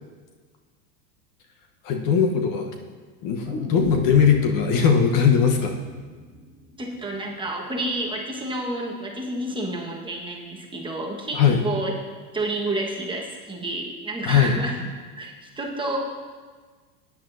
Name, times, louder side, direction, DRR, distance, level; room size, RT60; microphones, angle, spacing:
voice 1, 1.8-2.7 3.2-5.8 11.3-11.6 14.3-14.6, left 7 dB, 45° left, 3 dB, 1.1 m, -19 dB
sound 1, 3.4-7.5 7.8-7.9, left 1 dB, 30° left, 3.4 m, -37 dB
voice 2, 6.8-11.9 12.3-14.7 15.2-16.0, right 2 dB, 10° right, -2 dB, 1.5 m, -30 dB
16.0 x 10.0 x 2.7 m, 1.5 s
supercardioid pair, 125°, 48 cm